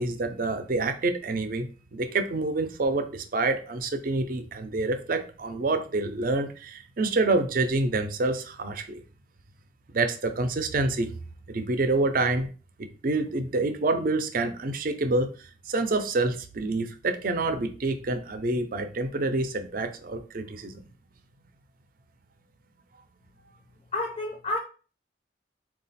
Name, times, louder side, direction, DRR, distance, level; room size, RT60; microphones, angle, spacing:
voice 1, 0.0-9.0 9.9-11.1 11.5-12.5 12.8-20.8, right 2 dB, 50° right, 8 dB, 0.5 m, -27 dB
voice 2, 23.9-24.6, left 2 dB, 35° left, 2 dB, 0.4 m, -29 dB
3.9 x 2.4 x 4.1 m, 0.38 s
head